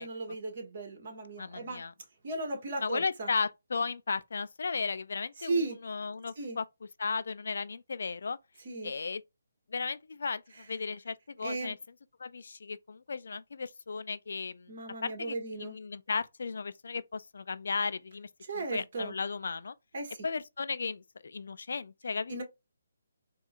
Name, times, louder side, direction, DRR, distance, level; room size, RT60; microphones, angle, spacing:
voice 1, 0.0-1.8 2.2-3.3 5.4-5.8 6.4-6.6 8.6-8.9 11.4-11.7 14.7-15.8 18.5-19.1 19.9-20.3 22.3-22.4, right 2 dB, 50° right, 1.5 m, -36 dB
voice 2, 1.4-1.9 2.8-6.6 7.0-8.4 8.8-9.2 9.7-10.4 10.7-11.8 12.2-14.7 15.0-18.3 18.5-19.7 20.2-22.4, left 4 dB, 60° left, 0.3 m, -35 dB
4.5 x 2.3 x 2.4 m
figure-of-eight pair, 145°, 0 cm